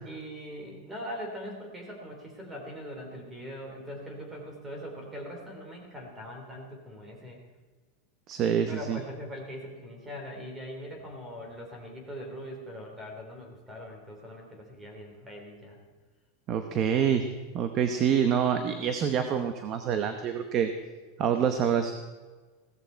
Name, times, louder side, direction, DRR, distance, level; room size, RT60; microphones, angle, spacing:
voice 1, 0.0-7.4 8.7-15.8, equal, 10° right, 1 dB, 3.2 m, -41 dB
voice 2, 8.3-9.0 16.5-17.3 17.5-20.7 21.2-21.9, right 8 dB, 30° right, 8 dB, 0.9 m, -26 dB
16.5 x 14.0 x 4.5 m, 1.3 s
supercardioid pair, 165°, 0 cm